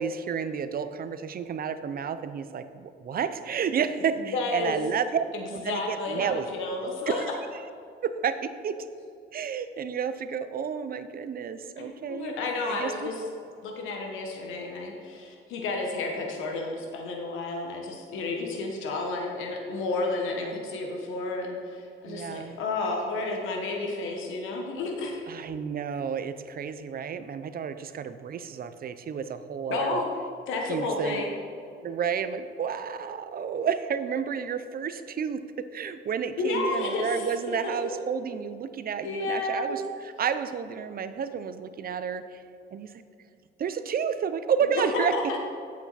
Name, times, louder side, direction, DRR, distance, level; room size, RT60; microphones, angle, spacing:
voice 1, 0.0-5.2 5.5-6.5 7.1-7.6 8.0-8.8 9.3-12.3 12.7-13.1 20.3-20.5 22.1-22.6 25.3-30.0 30.7-31.2 31.8-42.4 42.7-43.0 43.6-45.2, right 7 dB, 50° right, 11 dB, 0.6 m, -31 dB
voice 2, 4.2-4.8 5.3-7.2 11.8-13.2 13.6-25.2 29.7-30.1 30.5-31.3 36.4-37.9 39.0-39.8 44.9-45.4, left 3 dB, 90° left, 1 dB, 1.2 m, -31 dB
8.4 x 8.2 x 4.1 m, 2.5 s
cardioid pair, 90°, 20 cm